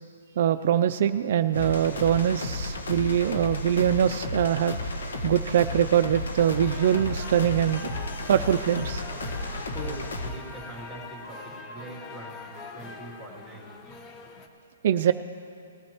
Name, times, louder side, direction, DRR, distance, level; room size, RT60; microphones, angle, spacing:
voice 1, 0.4-4.8 5.2-7.9 8.3-9.0 14.8-15.1, right 9 dB, 50° right, 10 dB, 0.4 m, -23 dB
sound 1, 1.5-10.3, left 2 dB, 80° left, 1.5 m, -33 dB
sound 2, 6.4-14.5, left 4 dB, 25° left, 0.9 m, -43 dB
voice 2, 9.7-13.7, right 2 dB, 5° left, -5 dB, 2.7 m, -42 dB
20.5 x 13.5 x 3.0 m, 2.5 s
hypercardioid pair, 155°, 0 cm